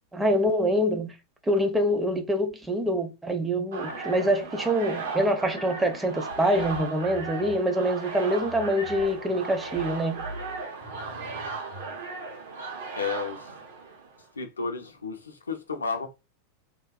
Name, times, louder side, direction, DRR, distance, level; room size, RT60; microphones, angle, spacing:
voice 1, 0.1-1.1 1.4-10.3, equal, 10° right, 0.5 m, -25 dB
sound 1, 3.7-14.2, right 4 dB, 60° right, 0.7 m, -36 dB
sound 2, 3.8-7.5 8.4-11.9, equal, 80° right, 1.4 m, -45 dB
voice 2, 12.9-13.5 14.4-16.1, left 4 dB, 75° left, 0.5 m, -32 dB
3.1 x 2.2 x 2.4 m
figure-of-eight pair, 90°, 0 cm